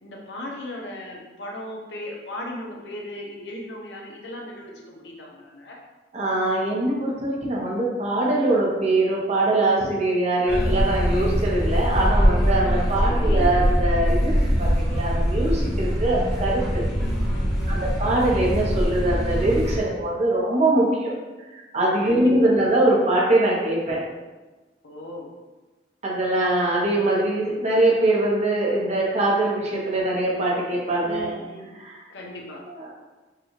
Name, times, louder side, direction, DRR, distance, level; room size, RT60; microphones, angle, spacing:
voice 1, 0.0-5.8 10.5-10.7 13.0-13.5 16.9-17.8 22.0-22.5 24.8-25.3 31.0-31.8 32.1-32.6, left 1 dB, 80° left, -1 dB, 0.8 m, -37 dB
voice 2, 6.1-16.8 17.7-21.1 21.5-24.0 26.0-31.4 31.8-32.0 32.7-32.9, right 1 dB, 40° right, -3 dB, 0.9 m, -22 dB
sound 1, 10.5-19.8, equal, 5° right, 1.0 m, -22 dB
4.7 x 2.4 x 3.1 m, 1.2 s
head